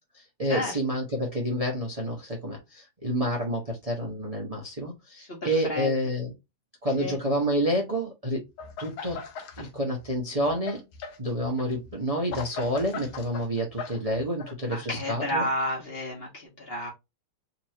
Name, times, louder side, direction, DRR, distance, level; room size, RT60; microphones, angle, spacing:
voice 1, 0.1-6.3 6.8-8.5 8.8-9.2 9.6-10.8 11.2-15.5, equal, 30° right, 0.6 m, -29 dB
voice 2, 5.2-5.9 7.0-7.2 14.7-16.9, equal, 35° left, 1.2 m, -31 dB
sound 1, 8.6-9.7 10.0-14.5, left 5 dB, 70° left, 1.6 m, -39 dB
4.1 x 3.0 x 2.9 m
omnidirectional pair, 2.4 m